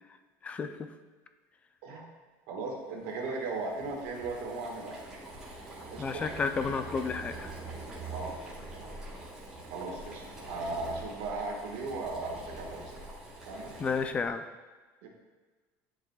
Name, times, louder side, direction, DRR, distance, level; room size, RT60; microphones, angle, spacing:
voice 1, 2.5-5.0 5.9-6.3 8.1-8.4 9.7-12.8 13.4-13.7 15.0-15.1, right 3 dB, 80° right, 0 dB, 1.6 m, -37 dB
Boiling, 3.0-14.3, right 2 dB, 10° right, 1.7 m, -44 dB
voice 2, 6.0-7.5 13.8-14.4, left 5 dB, 15° left, 9 dB, 0.3 m, -31 dB
11.0 x 4.9 x 2.3 m, 1.4 s
cardioid pair, 170°, 7 cm